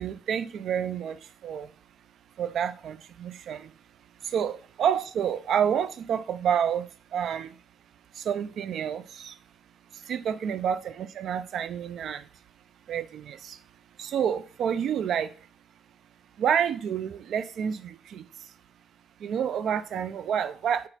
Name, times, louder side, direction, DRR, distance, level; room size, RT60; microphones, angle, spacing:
voice 1, 0.0-1.7 2.4-3.7 4.3-7.5 8.2-9.3 10.1-12.2 12.9-13.6 14.0-15.3 16.4-18.2 19.2-20.9, right 8 dB, 70° right, 0.3 m, -29 dB
4.2 x 2.5 x 4.0 m
cardioid pair, 90°, 0 cm